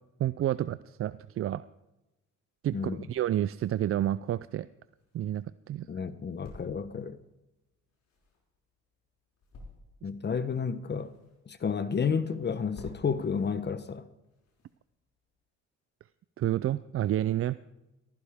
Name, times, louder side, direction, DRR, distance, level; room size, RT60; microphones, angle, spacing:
voice 1, 0.2-1.6 2.6-4.7 5.1-5.9 16.4-17.6, right 12 dB, 50° right, 0.4 m, -29 dB
voice 2, 2.7-3.1 5.9-7.2 10.0-11.1 11.5-14.1, left 6 dB, 35° left, 0.8 m, -31 dB
sound 1, 4.7-15.4, left 3 dB, 65° left, 5.6 m, -55 dB
16.0 x 14.5 x 3.5 m
cardioid pair, 90°, 30 cm